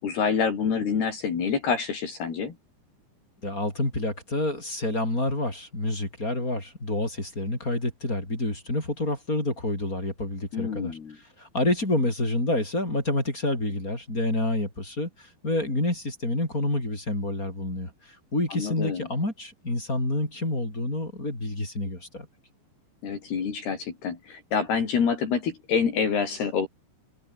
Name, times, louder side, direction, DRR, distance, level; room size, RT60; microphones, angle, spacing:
voice 1, 0.0-2.6 10.5-11.2 18.5-19.1 23.0-26.7, left 6 dB, 60° left, 5.9 m, -27 dB
voice 2, 3.4-22.3, left 2 dB, 20° left, 6.5 m, -28 dB
omnidirectional pair, 5.1 m